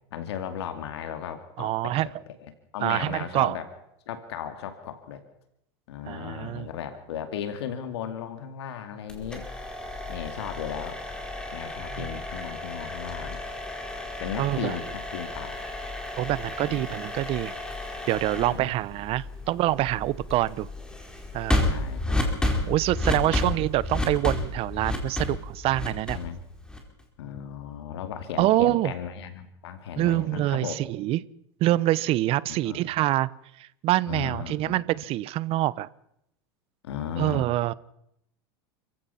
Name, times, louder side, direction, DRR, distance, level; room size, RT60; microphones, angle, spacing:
voice 1, 0.1-3.7 4.1-5.2 5.9-9.5 10.1-11.0 11.5-13.4 14.2-15.6 16.6-16.9 18.3-18.8 21.6-22.3 23.1-23.4 26.1-26.4 27.2-30.8 32.5-32.8 34.1-34.8 36.8-37.5, left 8 dB, 85° left, 2.4 m, -36 dB
voice 2, 1.6-2.1 2.8-3.6 6.1-6.7 11.9-12.1 14.4-14.7 16.2-17.5 18.1-20.7 21.3-21.7 22.7-26.2 28.4-28.9 30.0-31.2 31.6-33.3 33.6-35.9 37.2-37.7, right 16 dB, 45° right, 0.9 m, -25 dB
sound 1, 9.1-27.0, left 1 dB, 5° left, 4.5 m, -32 dB
29.0 x 15.5 x 5.8 m
supercardioid pair, 120°, 13 cm